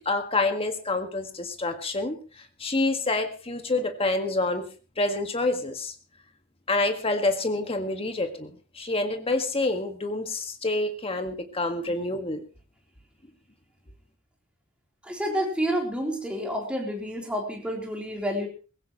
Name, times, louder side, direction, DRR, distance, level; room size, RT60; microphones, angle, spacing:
voice 1, 0.0-4.7 5.0-5.9 6.7-12.4, left 2 dB, 30° left, 6 dB, 1.8 m, -27 dB
voice 2, 15.0-18.5, equal, 5° right, 0 dB, 3.7 m, -29 dB
20.0 x 16.5 x 3.1 m, 0.35 s
head